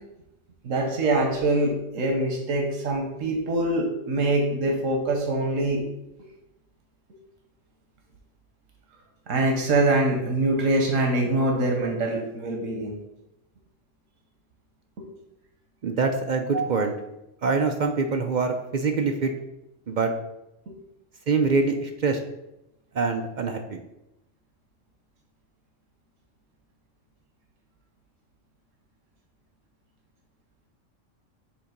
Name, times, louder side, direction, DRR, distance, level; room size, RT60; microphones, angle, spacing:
voice 1, 0.6-5.8 9.3-13.0 15.0-15.1 16.5-16.9, right 2 dB, 90° right, 1 dB, 1.4 m, -24 dB
voice 2, 15.8-17.0 17.4-19.3 19.9-20.1 21.3-22.2 22.9-23.8, right 4 dB, 60° right, 5 dB, 0.5 m, -24 dB
7.1 x 2.8 x 5.1 m, 0.90 s
omnidirectional pair, 1.3 m